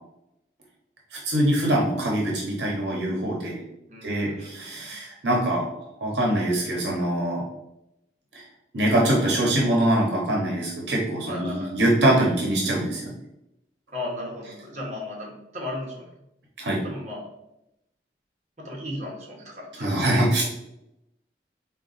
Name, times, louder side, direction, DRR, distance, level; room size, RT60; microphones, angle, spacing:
voice 1, 1.1-3.6 4.0-5.7 6.0-7.4 8.3-8.4 8.7-13.1 16.6-16.8 19.8-20.4, right 1 dB, 80° right, -2 dB, 0.8 m, -23 dB
voice 2, 3.9-4.9 11.3-11.9 13.9-16.1 16.8-17.3 18.6-20.3, left 1 dB, 40° right, -2 dB, 1.0 m, -36 dB
3.9 x 2.3 x 3.9 m, 0.85 s
head